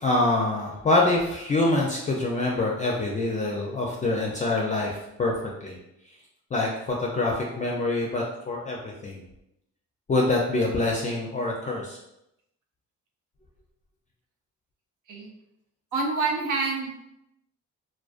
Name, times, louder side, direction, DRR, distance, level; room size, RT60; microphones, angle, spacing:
voice 1, 0.0-5.3 5.6-5.8 6.5-9.2 10.1-12.0, left 2 dB, 25° left, -2 dB, 0.3 m, -25 dB
voice 2, 15.9-17.0, right 3 dB, 85° right, 1 dB, 0.6 m, -27 dB
2.4 x 2.2 x 2.4 m, 0.85 s
cardioid pair, 90°, 30 cm